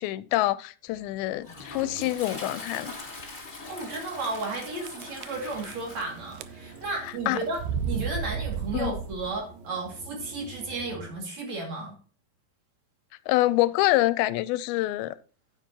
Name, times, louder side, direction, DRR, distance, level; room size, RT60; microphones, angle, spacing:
voice 1, 0.0-3.0 7.3-7.4 8.7-9.0 13.3-15.1, left 17 dB, 85° left, 2.4 m, -26 dB
Toilet flush, 0.9-9.2, left 2 dB, 40° left, 0.7 m, -43 dB
sound 1, 1.8-2.2 2.8-2.9 3.2-3.3 4.2-4.6 4.9-6.0 6.3-6.9 7.5-9.5, right 7 dB, 85° right, 1.9 m, -33 dB
voice 2, 3.7-7.6 7.9-11.9, right 3 dB, 50° right, 3.1 m, -33 dB
sound 2, 3.7-11.2, right 4 dB, 65° right, 1.8 m, -49 dB
9.7 x 9.0 x 2.8 m
omnidirectional pair, 4.3 m